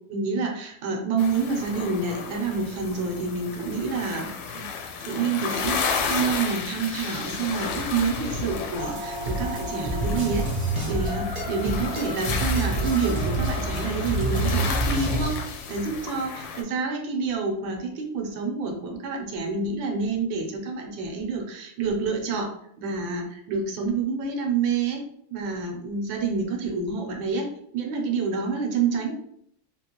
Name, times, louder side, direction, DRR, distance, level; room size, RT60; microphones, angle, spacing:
voice 1, 0.1-4.7 5.1-10.5 10.9-15.4 15.7-25.0 25.3-27.5 27.7-29.2, right 4 dB, 90° right, 2 dB, 1.5 m, -28 dB
sound 1, 1.2-16.6, left 5 dB, 85° left, 1.3 m, -33 dB
sound 2, 8.8-15.3, right 1 dB, 35° right, 0.6 m, -28 dB
3.3 x 2.9 x 2.9 m, 0.69 s
omnidirectional pair, 2.0 m